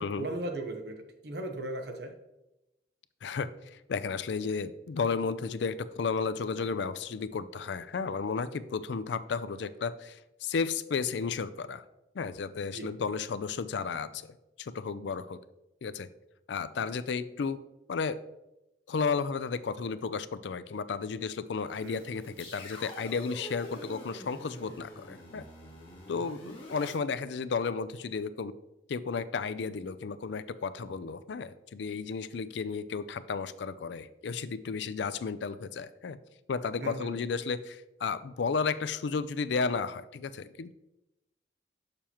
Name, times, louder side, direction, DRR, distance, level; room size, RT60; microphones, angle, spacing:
voice 1, 0.0-2.1 12.7-12.9 21.8-22.1 36.8-37.2, right 2 dB, 60° right, 5 dB, 1.0 m, -37 dB
voice 2, 3.2-11.8 12.2-14.3 14.6-15.4 15.8-16.1 16.5-17.6 17.9-18.2 18.9-25.4 26.1-28.5 28.9-36.2 36.5-40.7, left 5 dB, 70° left, 14 dB, 0.4 m, -33 dB
sound 1, 21.7-26.9, left 1 dB, 35° left, 2.2 m, -46 dB
6.9 x 6.7 x 3.0 m, 0.94 s
head